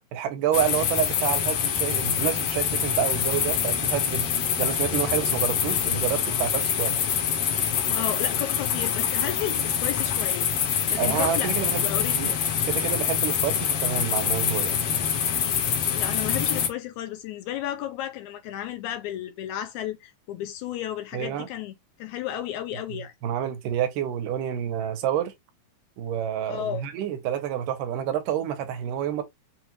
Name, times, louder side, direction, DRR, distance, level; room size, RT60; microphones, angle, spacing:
voice 1, 0.1-4.3 4.6-6.9 11.0-11.9 12.1-12.3 12.7-14.8 21.1-21.5 23.2-25.3 26.0-29.2, right 10 dB, 80° right, 2.5 m, -28 dB
sound 1, 0.5-16.7, left 8 dB, 60° left, 1.7 m, -25 dB
voice 2, 7.9-10.5 10.9-12.4 15.9-23.1 26.5-26.8, left 11 dB, 80° left, 1.8 m, -33 dB
6.2 x 2.5 x 3.0 m
omnidirectional pair, 3.8 m